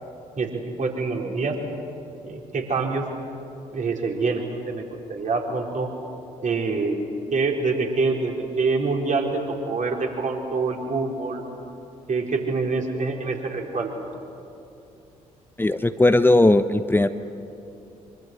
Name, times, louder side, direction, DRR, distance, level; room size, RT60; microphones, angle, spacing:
voice 1, 0.4-1.6 2.2-3.0 3.7-4.8 5.1-5.9 6.4-7.0 7.3-11.4 12.1-13.9, right 4 dB, 45° right, 1 dB, 4.3 m, -25 dB
voice 2, 15.6-17.1, left 2 dB, 10° left, 11 dB, 1.0 m, -18 dB
25.0 x 24.5 x 7.8 m, 2.8 s
figure-of-eight pair, 45°, 18 cm